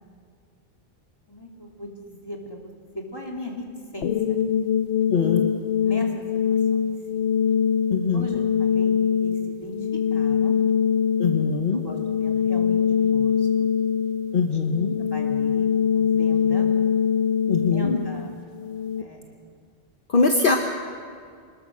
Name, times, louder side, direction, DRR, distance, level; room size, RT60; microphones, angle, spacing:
voice 1, 1.3-3.7 3.9-4.4 5.8-6.1 6.5-7.2 8.1-9.7 10.1-10.5 11.7-13.7 14.5-14.6 15.0-16.7 17.6-18.3 19.0-19.5, left 1 dB, 20° left, -1 dB, 3.3 m, -38 dB
sound 1, 4.0-19.0, left 7 dB, 85° left, 1.1 m, -23 dB
voice 2, 5.1-5.4 7.9-8.3 11.2-11.8 14.3-15.0 17.5-18.0 20.1-20.6, left 4 dB, 55° left, 3 dB, 1.3 m, -22 dB
25.5 x 20.5 x 6.3 m, 2.2 s
omnidirectional pair, 1.0 m